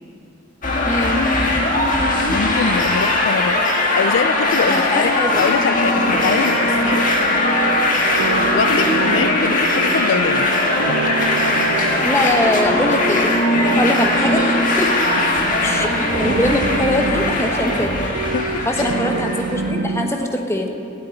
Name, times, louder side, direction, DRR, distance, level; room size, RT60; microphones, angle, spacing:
sound 1, 0.6-19.7, left 2 dB, 40° left, 1.6 m, -19 dB
voice 1, 0.8-1.2 4.7-5.4 12.0-13.4 13.7-15.0 15.6-18.0 18.6-20.8, left 1 dB, 15° left, 3 dB, 1.0 m, -22 dB
voice 2, 2.3-7.0 8.5-10.5 15.2-15.5 18.3-18.7, left 6 dB, 70° left, 12 dB, 0.4 m, -24 dB
sound 2, 6.0-20.2, right 5 dB, 85° right, 0.4 m, -28 dB
12.5 x 8.3 x 9.0 m, 2.5 s
head